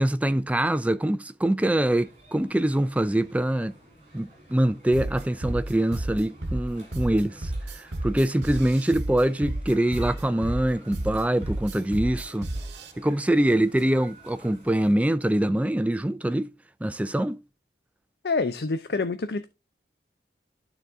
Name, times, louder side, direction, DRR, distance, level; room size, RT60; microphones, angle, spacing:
voice 1, 0.0-3.7 4.1-12.5 13.0-16.5 16.8-17.4, right 1 dB, 10° right, 0.3 m, -24 dB
sound 1, 1.7-14.9, right 1 dB, 35° right, 3.6 m, -51 dB
sound 2, 4.9-12.9, right 1 dB, 75° right, 1.1 m, -32 dB
voice 2, 18.2-19.5, left 3 dB, 60° left, 0.5 m, -27 dB
11.5 x 4.0 x 3.6 m
head